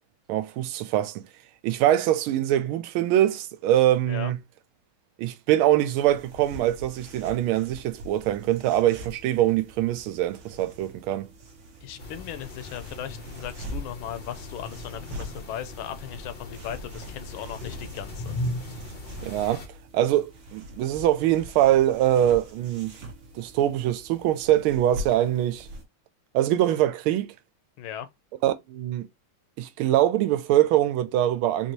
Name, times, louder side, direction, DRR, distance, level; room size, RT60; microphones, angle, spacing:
voice 1, 0.3-1.2 1.6-4.4 5.2-11.3 19.2-19.6 19.9-23.0 23.3-25.7 26.3-27.3 28.4-29.1 29.6-31.7, right 13 dB, 85° right, 1.4 m, -23 dB
sound 1, 6.0-25.8, equal, 60° right, 0.7 m, -43 dB
voice 2, 11.8-18.4 27.8-28.1, left 10 dB, 75° left, 1.4 m, -37 dB
sound 2, 12.0-19.7, left 1 dB, 50° left, 0.6 m, -38 dB
4.1 x 2.7 x 3.0 m
omnidirectional pair, 2.3 m